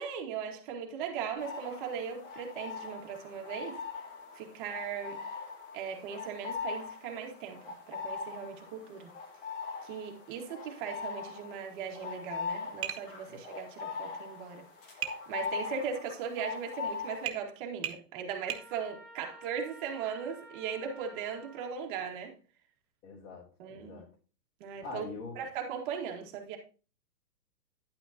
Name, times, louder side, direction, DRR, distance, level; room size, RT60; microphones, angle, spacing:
voice 1, 0.0-3.8 4.3-5.2 5.7-9.1 9.8-14.6 15.3-22.3 23.6-24.1 24.6-25.1 25.4-26.6, right 7 dB, 30° right, 2.1 m, -38 dB
sound 1, 1.4-17.3, left 5 dB, 30° left, 1.9 m, -41 dB
Tap, 12.8-13.1 15.0-15.2 17.3-17.4 17.8-18.0 18.5-18.7, right 10 dB, 65° right, 1.8 m, -35 dB
Trumpet, 18.4-21.8, right 1 dB, 5° left, 1.1 m, -52 dB
voice 2, 23.0-24.1 24.8-25.4, left 4 dB, 55° left, 3.3 m, -44 dB
10.5 x 9.2 x 2.9 m
hypercardioid pair, 155°, 49 cm